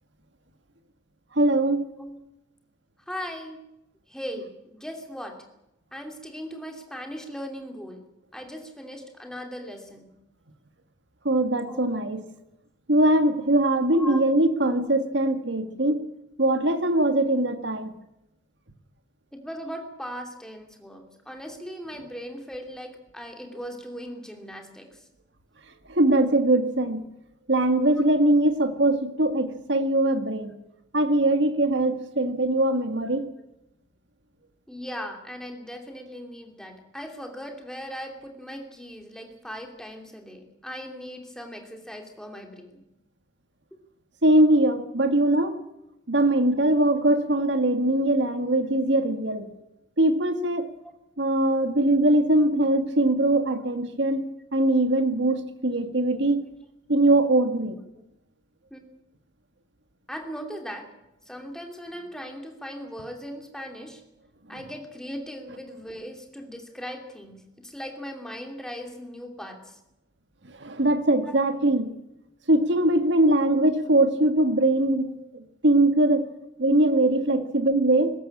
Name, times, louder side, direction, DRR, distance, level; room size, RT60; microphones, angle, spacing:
voice 1, 1.4-1.9 11.3-12.2 12.9-16.0 16.4-17.9 25.9-27.0 27.5-30.5 30.9-33.3 44.2-45.6 46.1-49.5 50.0-50.7 51.2-54.2 54.5-56.4 56.9-57.8 70.6-71.9 72.5-75.1 75.6-76.3 76.6-78.1, right 1 dB, 70° right, 9 dB, 1.9 m, -21 dB
voice 2, 3.1-3.6 4.1-5.4 5.9-8.1 8.3-10.1 11.7-12.0 13.9-14.2 15.8-15.9 19.3-25.1 27.9-28.0 34.7-42.8 50.8-50.9 51.6-51.7 52.3-52.4 56.1-56.2 58.7-58.8 60.1-60.9 61.3-64.0 64.5-69.8 71.2-71.4 75.0-75.2 77.3-77.5, equal, 5° left, 4 dB, 2.8 m, -39 dB
20.5 x 16.5 x 8.6 m, 0.87 s
head